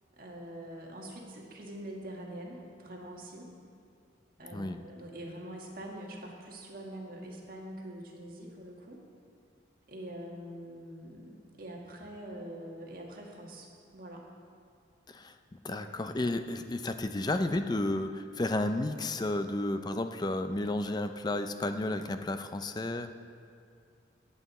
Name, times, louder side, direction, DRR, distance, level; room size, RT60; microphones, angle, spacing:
voice 1, 0.2-3.5 4.4-9.0 9.9-13.7 13.9-14.2 15.7-15.9, right 1 dB, 50° right, -1 dB, 1.6 m, -44 dB
voice 2, 15.6-23.1, left 2 dB, 20° left, 9 dB, 0.4 m, -32 dB
16.0 x 7.9 x 4.1 m, 2.3 s
head